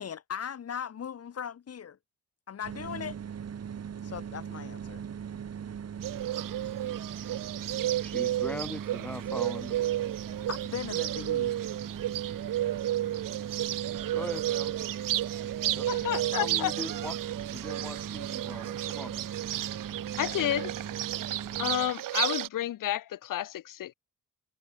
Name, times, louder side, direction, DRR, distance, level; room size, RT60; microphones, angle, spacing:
voice 1, 0.0-2.0 2.5-3.2 4.0-5.0 10.5-11.6, left 8 dB, 50° left, 1.6 m, -38 dB
sound 1, 2.6-21.9, right 8 dB, 50° right, 2.9 m, -39 dB
Bird, 6.0-22.5, right 13 dB, 90° right, 2.7 m, -32 dB
voice 2, 8.0-9.9 14.1-14.9 15.6-16.1 16.4-17.1 17.5-19.2, left 1 dB, 5° left, 2.0 m, -41 dB
voice 3, 15.9-16.7 20.2-20.7 21.6-23.9, left 12 dB, 80° left, 2.1 m, -31 dB
cardioid pair, 105°, 32 cm